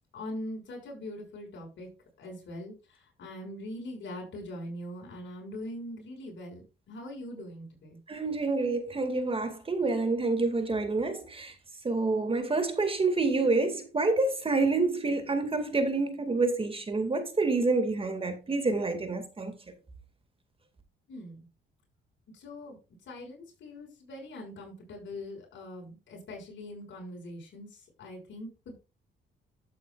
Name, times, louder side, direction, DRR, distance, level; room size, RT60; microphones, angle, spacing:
voice 1, 0.1-1.9 2.2-8.0 21.1-21.5 22.3-22.8 23.1-28.8, left 1 dB, 70° left, 6.4 m, -42 dB
voice 2, 8.1-11.5 11.8-19.5, right 3 dB, 30° right, 2.2 m, -28 dB
12.5 x 8.2 x 2.4 m
cardioid pair, 90°, 20 cm